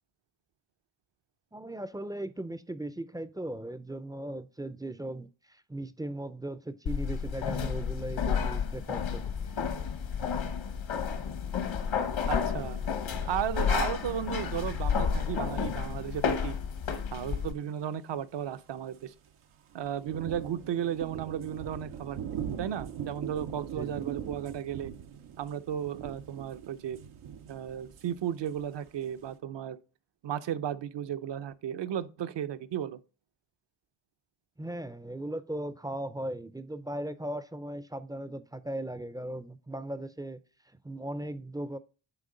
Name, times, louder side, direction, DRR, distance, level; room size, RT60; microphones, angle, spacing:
voice 1, 1.5-9.7 23.7-24.0 34.6-40.4 40.8-41.8, right 1 dB, 10° right, 0.4 m, -38 dB
sound 1, 6.9-17.5, left 6 dB, 70° left, 1.2 m, -31 dB
voice 2, 12.3-12.9 13.2-16.6 17.1-19.1 19.7-22.2 22.6-24.9 25.4-27.0 27.5-29.8 30.2-33.0, right 9 dB, 60° right, 0.6 m, -34 dB
sound 2, 17.7-17.8 18.0-18.1 18.4-18.6 18.9-19.3 19.7-29.4, right 9 dB, 90° right, 0.8 m, -41 dB
9.1 x 3.6 x 3.8 m
cardioid pair, 65°, 49 cm